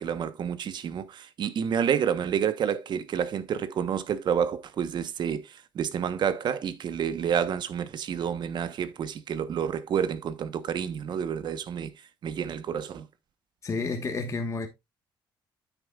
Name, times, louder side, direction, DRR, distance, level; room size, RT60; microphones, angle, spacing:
voice 1, 0.0-11.9 12.2-13.1, right 8 dB, 60° right, 1.0 m, -29 dB
voice 2, 13.6-14.7, left 4 dB, 35° left, 1.3 m, -30 dB
9.6 x 8.2 x 2.4 m
cardioid pair, 115°, 9 cm